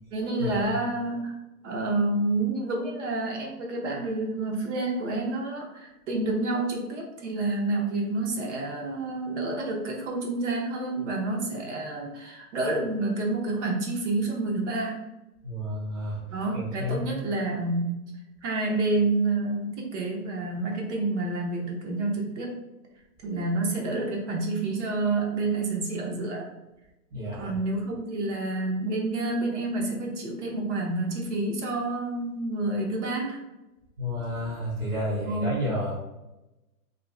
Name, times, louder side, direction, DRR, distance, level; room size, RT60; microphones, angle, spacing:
voice 1, 0.1-1.3 1.6-15.0 16.3-18.0 18.4-22.6 23.2-26.5 27.3-33.4 35.2-35.7, right 2 dB, 50° right, 0 dB, 0.7 m, -29 dB
voice 2, 15.4-16.2 16.5-17.2 27.1-27.5 34.0-36.0, left 1 dB, 10° right, -8 dB, 0.6 m, -31 dB
2.5 x 2.2 x 3.1 m, 1.0 s
hypercardioid pair, 135°, 46 cm